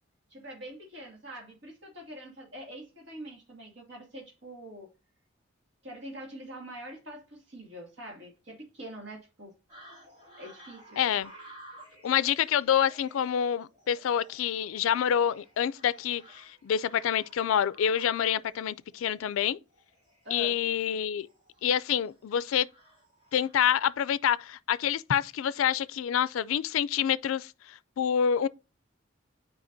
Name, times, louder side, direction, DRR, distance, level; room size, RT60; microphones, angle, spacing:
voice 1, 0.3-4.9 5.8-9.5 10.4-11.0 20.2-20.6, equal, 60° right, 2.3 m, -44 dB
sound 1, 9.7-23.9, right 1 dB, 35° right, 3.9 m, -55 dB
voice 2, 11.0-11.3 12.0-19.6 20.3-21.3 21.6-22.7 23.3-28.5, left 9 dB, 85° left, 0.3 m, -27 dB
7.6 x 4.9 x 2.6 m
head